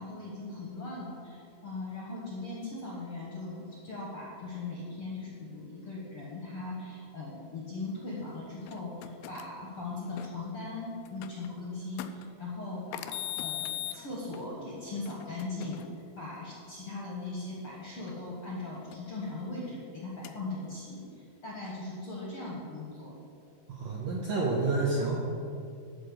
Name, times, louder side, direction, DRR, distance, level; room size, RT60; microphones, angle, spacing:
voice 1, 0.0-23.1, left 2 dB, 55° left, -4 dB, 1.6 m, -39 dB
sound 1, 8.2-10.3 11.1-11.5 12.0-12.2 12.9-16.2 18.1-19.7 20.2-20.8, left 12 dB, 80° left, 2.2 m, -41 dB
voice 2, 23.7-25.2, right 3 dB, 70° right, -3 dB, 1.7 m, -29 dB
11.5 x 4.5 x 8.1 m, 2.4 s
omnidirectional pair, 4.6 m